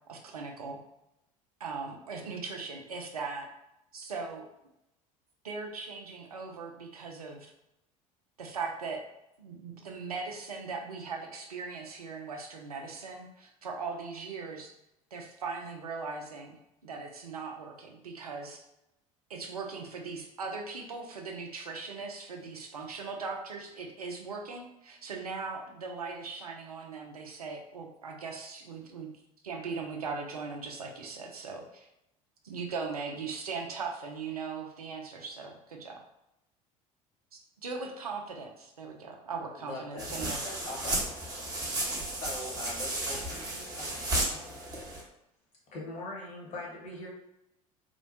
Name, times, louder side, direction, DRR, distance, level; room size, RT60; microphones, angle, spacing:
voice 1, 0.1-0.8 1.6-3.5 3.9-4.5 5.4-7.5 8.4-9.0 9.4-14.7 15.1-16.6 16.8-18.6 19.3-29.1 29.4-31.9 32.4-36.0 37.3-40.4, right 4 dB, 80° right, 2 dB, 0.4 m, -39 dB
voice 2, 39.6-41.1 41.9-44.6, left 2 dB, 55° left, -3 dB, 0.9 m, -43 dB
sound 1, 40.0-45.0, right 1 dB, 20° right, 0.8 m, -33 dB
voice 3, 45.7-47.1, left 2 dB, 40° left, -3 dB, 1.1 m, -40 dB
2.9 x 2.1 x 2.6 m, 0.85 s
figure-of-eight pair, 70°, 19 cm